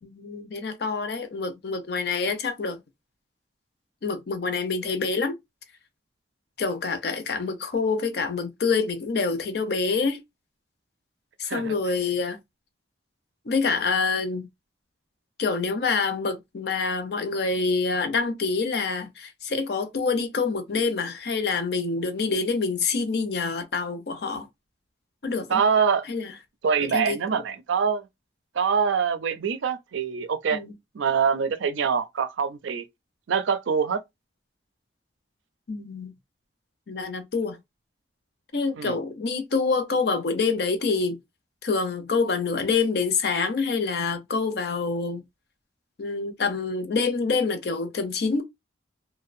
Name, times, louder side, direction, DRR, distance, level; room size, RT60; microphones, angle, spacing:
voice 1, 0.0-2.8 4.0-5.4 6.6-10.2 11.4-12.4 13.5-14.5 15.4-24.5 25.2-25.6 26.1-26.3 26.8-27.4 30.5-30.7 35.7-36.1 36.9-37.6 38.5-41.2 41.6-45.2 46.0-48.4, left 4 dB, 55° left, 0.5 m, -26 dB
voice 2, 25.5-26.0 26.6-28.1 28.5-30.6 30.9-32.8 33.3-34.0 38.8-38.9, right 6 dB, 85° right, 0.4 m, -24 dB
2.6 x 2.0 x 2.5 m
head